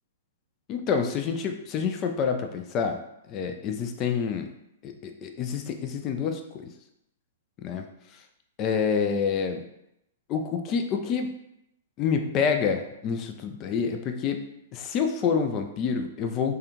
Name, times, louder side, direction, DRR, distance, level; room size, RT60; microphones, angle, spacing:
voice 1, 0.7-3.0 3.3-4.5 4.8-6.7 7.6-7.8 8.6-9.6 10.3-11.3 12.0-14.5 14.7-16.5, left 6 dB, 30° left, 5 dB, 0.4 m, -27 dB
3.4 x 2.2 x 2.9 m, 0.81 s
figure-of-eight pair, 110°, 0 cm